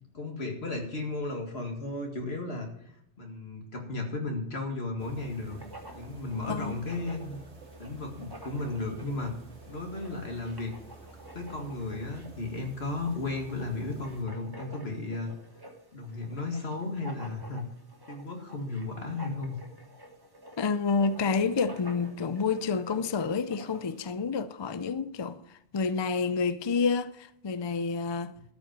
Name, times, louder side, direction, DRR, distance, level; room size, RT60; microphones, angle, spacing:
voice 1, 0.1-2.7 3.2-5.6 5.9-7.4 7.8-9.3 9.7-10.7 11.3-15.3 15.9-17.6 18.1-19.6, left 2 dB, 65° left, 2.3 m, -34 dB
sound 1, 5.0-14.2, right 3 dB, 85° right, 2.3 m, -51 dB
Writing, 5.3-24.1, right 1 dB, 20° right, 1.4 m, -50 dB
voice 2, 6.4-6.8 20.6-25.4 25.7-28.3, left 5 dB, 40° left, 0.4 m, -29 dB
12.5 x 5.5 x 8.9 m
omnidirectional pair, 1.1 m